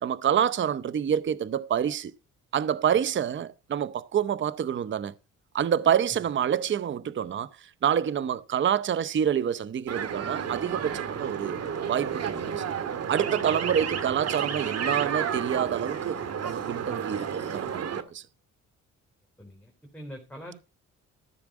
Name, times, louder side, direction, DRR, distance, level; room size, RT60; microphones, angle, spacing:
voice 1, 0.0-2.1 2.5-5.1 5.5-11.6 11.9-12.6 13.0-18.2, right 9 dB, 40° right, 0.7 m, -27 dB
sound 1, 9.9-18.0, right 7 dB, 55° right, 1.8 m, -31 dB
voice 2, 19.4-20.6, equal, 5° left, 4.0 m, -44 dB
14.0 x 7.2 x 5.0 m
cardioid pair, 90°, 30 cm